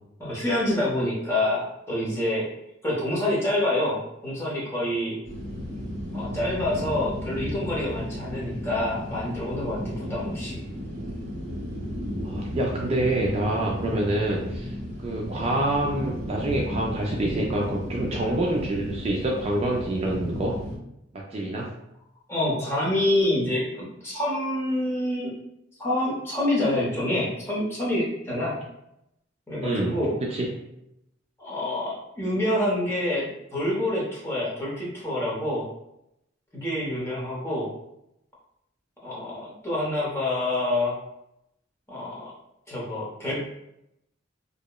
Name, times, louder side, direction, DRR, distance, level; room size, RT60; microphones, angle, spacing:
voice 1, 0.2-2.5 2.8-5.2 6.1-10.6 13.9-14.0 22.3-25.3 25.8-28.6 29.5-30.2 31.4-33.3 33.5-35.7 36.5-37.7 39.0-41.0 41.9-42.3 42.7-43.4, left 1 dB, 15° left, -6 dB, 0.7 m, -27 dB
sound 1, 5.2-20.8, equal, 50° right, 0.8 m, -34 dB
voice 2, 12.2-14.7 15.0-20.5 21.1-21.7 29.6-29.9 30.3-30.5, right 1 dB, 30° right, -2 dB, 0.3 m, -26 dB
2.7 x 2.0 x 2.2 m, 0.82 s
head